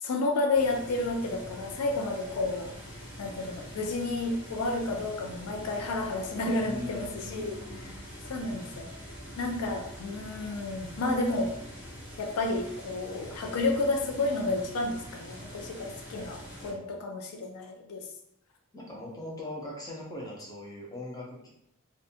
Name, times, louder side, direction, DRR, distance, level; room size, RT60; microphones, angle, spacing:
voice 1, 0.0-2.7 3.2-7.6 8.3-8.9 9.4-11.5 12.2-18.0, left 2 dB, 85° left, 3 dB, 0.4 m, -31 dB
sound 1, 0.5-16.7, equal, 50° left, 1.3 m, -45 dB
voice 2, 6.6-8.0 16.1-17.0 18.7-21.5, left 1 dB, 15° left, -3 dB, 0.5 m, -41 dB
2.5 x 2.2 x 2.7 m, 0.75 s
head